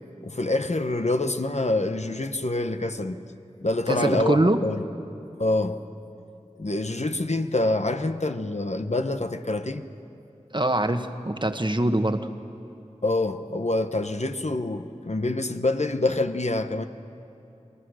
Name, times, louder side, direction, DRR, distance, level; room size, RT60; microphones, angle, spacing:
voice 1, 0.2-3.2 3.6-4.8 5.4-5.8 6.6-9.8 13.0-16.9, left 2 dB, 65° left, 7 dB, 1.1 m, -26 dB
voice 2, 3.9-4.6 10.5-12.2, right 1 dB, 40° right, 7 dB, 1.3 m, -23 dB
30.0 x 22.0 x 6.4 m, 2.9 s
wide cardioid pair, 45°, 12 cm